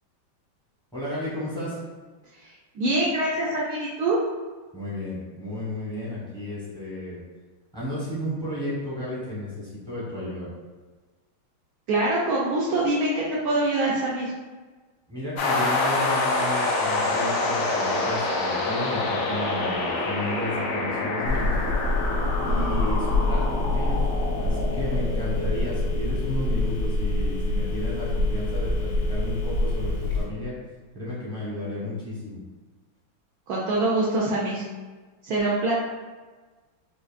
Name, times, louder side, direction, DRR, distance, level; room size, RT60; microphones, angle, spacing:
voice 1, 0.9-1.8 4.7-7.2 7.7-10.5 15.1-21.6 22.4-24.1 24.4-30.5 30.9-32.4, left 1 dB, 5° left, -9 dB, 0.4 m, -33 dB
voice 2, 2.4-4.2 11.9-14.3 33.5-34.6 35.2-35.7, right 2 dB, 85° right, -5 dB, 0.8 m, -24 dB
sound 1, 15.4-27.0, left 2 dB, 85° left, 1.5 m, -27 dB
Telephone, 21.3-30.2, left 2 dB, 65° left, 1.4 m, -26 dB
5.0 x 2.5 x 2.4 m, 1.3 s
omnidirectional pair, 2.2 m